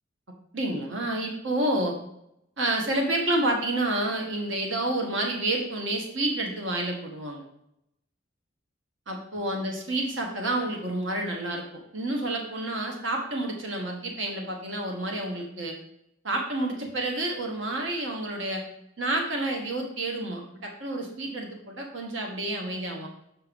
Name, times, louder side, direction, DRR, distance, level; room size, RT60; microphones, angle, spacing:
voice 1, 0.5-1.9 2.6-7.4 9.1-11.6 11.9-15.7 16.2-18.6 19.0-23.1, right 1 dB, 80° right, 1 dB, 1.2 m, -29 dB
7.3 x 4.5 x 5.2 m, 0.80 s
head